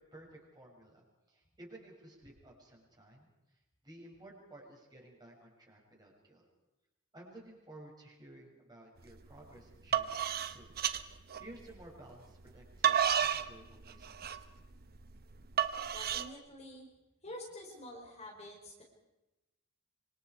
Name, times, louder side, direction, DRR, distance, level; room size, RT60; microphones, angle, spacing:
voice 1, 0.1-6.5 7.1-10.7 11.1-14.3, right 1 dB, 20° right, -2 dB, 6.6 m, -55 dB
sound 1, 9.1-9.4 9.7-11.8 12.4-16.3, right 9 dB, 45° right, 1.0 m, -32 dB
voice 2, 15.9-16.9 17.2-18.8, left 1 dB, 30° left, -1 dB, 4.3 m, -48 dB
26.0 x 25.0 x 4.7 m, 0.99 s
head